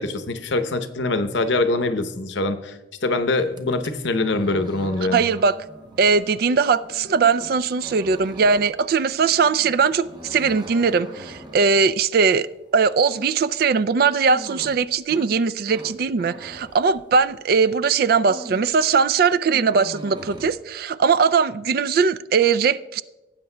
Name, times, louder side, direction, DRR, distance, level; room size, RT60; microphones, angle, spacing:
voice 1, 0.0-2.7 3.0-5.2, left 2 dB, 75° left, 9 dB, 0.8 m, -23 dB
sound 1, 3.4-17.5 17.9-18.8 19.1-20.5, equal, 25° right, 0.7 m, -41 dB
sound 2, 4.8-11.9, right 2 dB, 10° left, 1.8 m, -51 dB
voice 2, 5.1-5.6 6.0-12.5 12.7-23.0, right 5 dB, 55° right, 17 dB, 0.3 m, -20 dB
18.5 x 8.6 x 2.2 m, 1.1 s
head